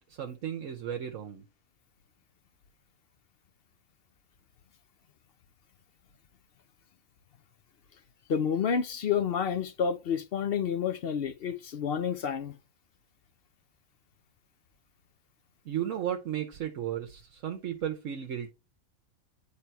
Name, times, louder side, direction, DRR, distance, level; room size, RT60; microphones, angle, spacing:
voice 1, 0.1-1.4 15.6-18.5, right 10 dB, 75° right, 1.1 m, -34 dB
voice 2, 8.3-12.5, left 7 dB, 55° left, 0.7 m, -29 dB
9.5 x 3.4 x 4.5 m
omnidirectional pair, 1.4 m